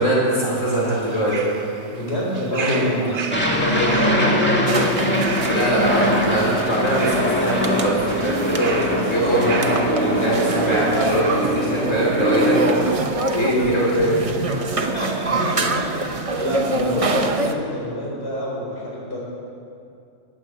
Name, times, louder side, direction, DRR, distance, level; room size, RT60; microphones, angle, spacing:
voice 1, 0.0-1.7 2.6-2.9 5.2-12.6 13.3-14.7 15.4-15.6, right 1 dB, 85° left, -5 dB, 4.5 m, -22 dB
sound 1, 0.7-10.8, right 5 dB, 65° right, 1.4 m, -35 dB
voice 2, 1.9-5.0 5.4-5.5 9.3-11.5 13.5-13.7 14.7-19.2, equal, 55° left, -5 dB, 4.3 m, -28 dB
Aircraft, 3.3-12.8, equal, 10° left, 2.1 m, -22 dB
sound 2, 4.7-17.5, right 3 dB, 30° right, 0.8 m, -26 dB
20.5 x 8.9 x 7.9 m, 2.5 s
omnidirectional pair, 1.3 m